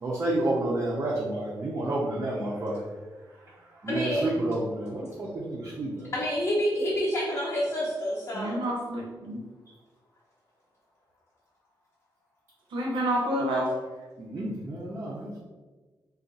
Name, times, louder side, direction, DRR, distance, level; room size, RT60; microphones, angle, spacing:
voice 1, 0.0-2.8 3.8-6.1 14.2-15.4, right 1 dB, 30° right, -5 dB, 0.5 m, -30 dB
voice 2, 3.9-4.3 6.1-8.6, equal, 30° left, -6 dB, 0.6 m, -28 dB
voice 3, 8.3-9.4 12.7-13.7, right 1 dB, 90° right, -3 dB, 0.7 m, -28 dB
2.4 x 2.2 x 3.9 m, 1.3 s
wide cardioid pair, 155°, 8 cm